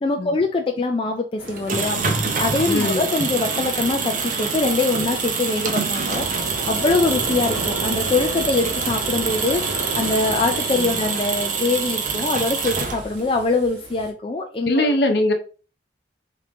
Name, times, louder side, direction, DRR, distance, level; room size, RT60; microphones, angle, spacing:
voice 1, 0.0-2.0 2.4-6.3 6.7-15.0, left 3 dB, 30° left, 3 dB, 0.3 m, -23 dB
sound 1, 1.4-14.1, right 2 dB, 75° right, 1.7 m, -33 dB
sound 2, 1.5-13.3, right 5 dB, 45° right, 0.6 m, -26 dB
voice 2, 2.7-3.0 10.7-11.0 14.6-15.3, left 1 dB, 65° left, 5 dB, 0.8 m, -21 dB
3.4 x 3.1 x 3.7 m, 0.36 s
head